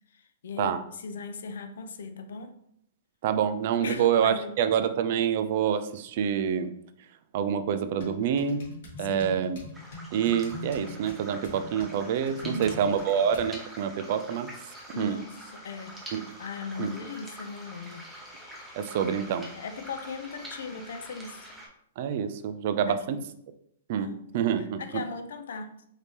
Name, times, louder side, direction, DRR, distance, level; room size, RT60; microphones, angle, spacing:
voice 1, 0.1-2.6 3.8-4.5 9.0-9.3 12.4-12.9 14.9-16.0 16.4-18.1 19.0-19.1 19.4-21.5 22.9-23.2 24.0-24.2 24.6-25.8, left 4 dB, 75° left, 0.6 m, -38 dB
voice 2, 3.2-6.7 7.3-8.6 9.0-9.6 10.1-14.5 15.0-15.2 16.1-16.3 16.8-16.9 18.7-19.5 22.0-23.2 23.9-24.8, right 8 dB, 40° right, 0.3 m, -27 dB
sound 1, 8.0-13.5, left 1 dB, 60° left, 1.7 m, -43 dB
sound 2, 9.7-21.7, equal, 5° right, 0.6 m, -45 dB
5.1 x 2.7 x 3.2 m
hypercardioid pair, 170°, 0 cm